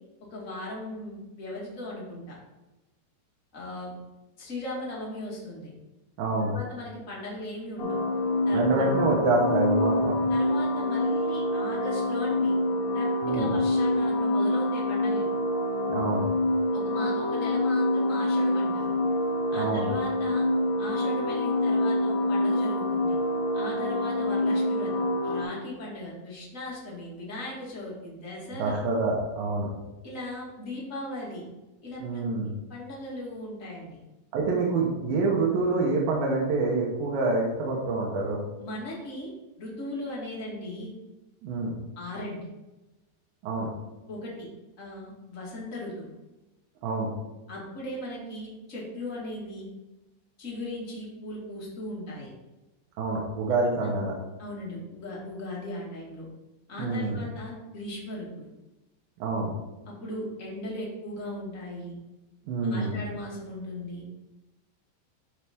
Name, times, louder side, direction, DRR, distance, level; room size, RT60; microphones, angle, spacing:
voice 1, 0.3-2.3 3.5-4.0 4.4-5.7 6.5-8.0 8.4-8.9 10.3-12.6 12.9-15.2 16.7-18.9 19.5-20.4 20.8-23.2 23.5-28.8 30.0-31.4 31.8-32.0 32.7-34.0 38.6-39.3 39.6-40.9 41.9-42.5 44.1-44.5 44.8-46.1 47.5-49.6 50.4-52.3 53.5-53.9 54.4-56.2 56.7-58.5 59.9-61.9 62.6-64.0, left 1 dB, 50° left, -4 dB, 0.9 m, -38 dB
voice 2, 6.2-6.5 8.5-10.1 13.2-13.5 15.9-16.2 19.5-19.9 28.6-29.7 32.0-32.5 34.3-38.4 41.4-41.8 43.4-43.7 46.8-47.1 53.0-54.1 56.8-57.3 59.2-59.5 62.4-63.0, right 3 dB, 65° right, -3 dB, 2.6 m, -26 dB
sound 1, 7.8-25.4, left 1 dB, 80° left, 1.5 m, -26 dB
12.0 x 4.9 x 3.6 m, 1.0 s
omnidirectional pair, 5.1 m